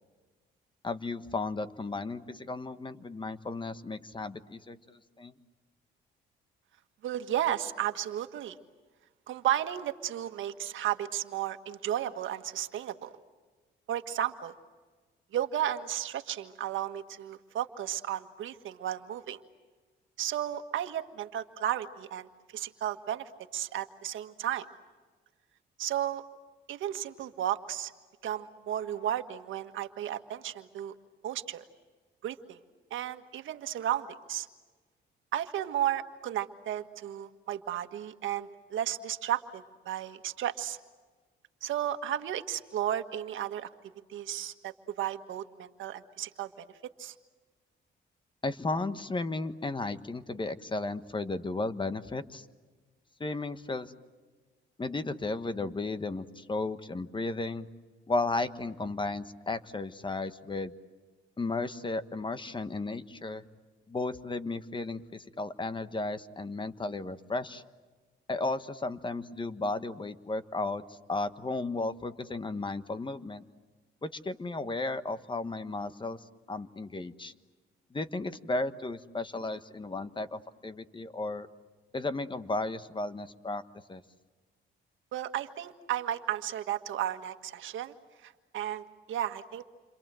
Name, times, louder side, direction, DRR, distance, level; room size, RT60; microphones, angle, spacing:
voice 1, 0.8-5.3 48.4-52.4 53.2-53.9 54.8-57.7 58.1-60.7 61.4-63.4 63.9-67.6 68.3-73.4 74.0-77.3 77.9-81.5 81.9-83.6 83.9-84.0, left 2 dB, 25° left, 11 dB, 1.3 m, -34 dB
voice 2, 7.0-8.6 9.3-13.1 13.9-14.5 15.3-19.4 20.2-24.6 25.8-26.2 26.7-27.9 28.2-30.9 31.2-31.6 32.2-32.6 32.9-34.5 35.3-40.8 41.6-43.7 44.1-46.7 47.0-47.1 85.1-87.9 88.2-89.6, right 11 dB, 75° right, 8 dB, 1.6 m, -34 dB
29.0 x 26.0 x 7.7 m, 1.3 s
cardioid pair, 90°, 20 cm